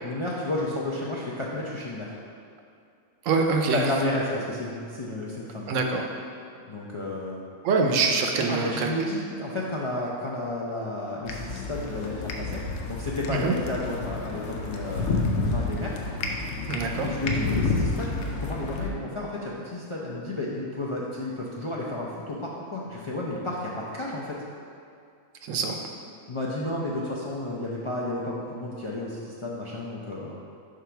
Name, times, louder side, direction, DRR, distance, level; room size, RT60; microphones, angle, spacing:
voice 1, 0.0-2.2 3.7-5.8 6.7-7.4 8.4-15.9 17.0-24.4 26.3-30.4, left 1 dB, 45° left, -5 dB, 0.4 m, -32 dB
voice 2, 3.2-3.8 5.7-6.0 7.6-8.9 13.3-13.5 16.7-17.1 25.4-25.8, right 4 dB, 80° right, 2 dB, 1.0 m, -24 dB
sound 1, 11.2-18.9, left 3 dB, 75° left, 1.0 m, -30 dB
4.9 x 3.8 x 5.6 m, 2.4 s
omnidirectional pair, 1.3 m